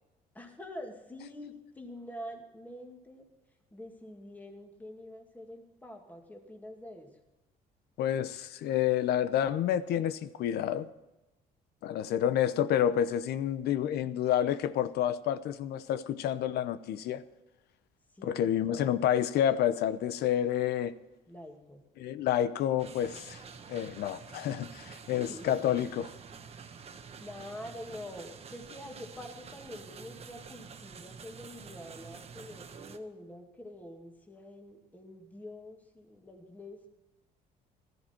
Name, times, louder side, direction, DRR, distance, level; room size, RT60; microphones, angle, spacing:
voice 1, 0.3-3.3 3.7-7.2 18.1-19.1 21.3-21.9 25.1-25.8 26.6-26.7 27.2-36.9, left 1 dB, 10° left, 2.2 m, -46 dB
voice 2, 8.0-10.9 11.8-17.2 18.2-21.0 22.0-23.4 23.7-26.1, left 10 dB, 75° left, 0.8 m, -29 dB
sound 1, 22.8-33.0, right 6 dB, 35° right, 1.2 m, -48 dB
15.0 x 14.0 x 4.5 m
cardioid pair, 110°, 17 cm